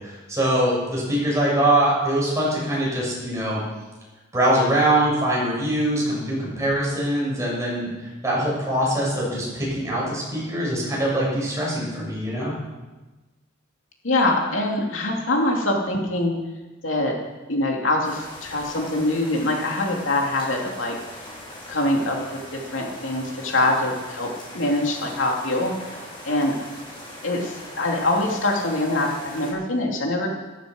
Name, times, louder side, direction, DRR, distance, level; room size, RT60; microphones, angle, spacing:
voice 1, 0.0-3.6 4.3-12.6, right 1 dB, 15° right, -5 dB, 6.9 m, -23 dB
voice 2, 14.0-16.4 16.8-17.2 17.5-21.0 21.7-25.7 26.2-26.6 27.2-30.3, left 2 dB, 75° left, 0 dB, 2.8 m, -24 dB
sound 1, 18.0-29.5, left 1 dB, 25° left, 4.2 m, -40 dB
14.5 x 13.0 x 6.3 m, 1.2 s
head